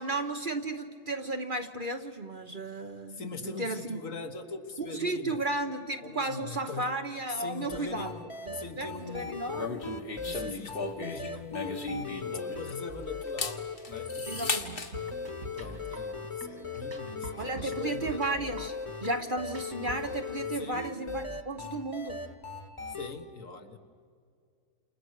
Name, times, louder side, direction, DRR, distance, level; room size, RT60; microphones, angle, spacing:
voice 1, 0.0-3.3 3.6-4.0 4.9-8.1 8.4-9.8 14.3-14.8 17.4-18.7 19.0-22.2, right 2 dB, 40° right, 6 dB, 1.0 m, -34 dB
voice 2, 3.1-5.4 6.0-6.9 7.3-9.4 10.2-14.6 15.5-18.2 20.6-20.8 23.0-23.8, left 4 dB, 60° left, 6 dB, 1.8 m, -41 dB
sound 1, 7.7-23.1, left 4 dB, 20° left, 1.5 m, -39 dB
sound 2, 9.5-12.8 13.2-14.9, left 3 dB, 40° left, 1.5 m, -36 dB
sound 3, 14.9-20.2, right 1 dB, 70° right, 3.7 m, -46 dB
29.5 x 28.5 x 6.5 m, 2.2 s
omnidirectional pair, 1.6 m